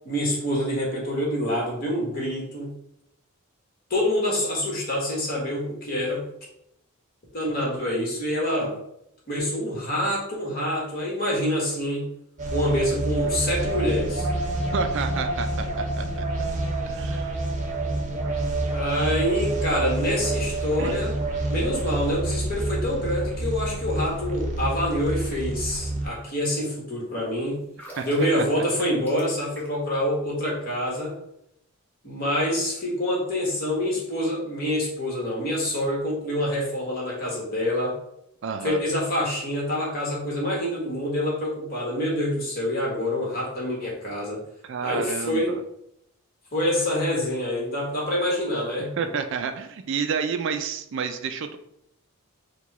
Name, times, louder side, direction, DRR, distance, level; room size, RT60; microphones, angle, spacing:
voice 1, 0.0-2.7 3.9-6.2 7.3-8.7 9.3-12.1 12.5-14.3 18.7-21.1 21.5-27.6 28.0-31.1 32.0-38.0 38.6-44.4 44.8-45.5 46.5-49.1, left 1 dB, 40° left, -3 dB, 1.4 m, -26 dB
sound 1, 12.4-26.1, right 2 dB, 35° right, 0.8 m, -28 dB
voice 2, 14.7-16.3 16.9-17.3 20.8-20.9 28.0-28.1 38.4-38.8 44.6-45.6 49.0-51.6, right 6 dB, 55° right, 8 dB, 0.3 m, -30 dB
sound 2, 27.6-30.0 30.2-30.4, right 1 dB, 5° left, 0.9 m, -45 dB
4.6 x 2.3 x 4.0 m, 0.78 s
head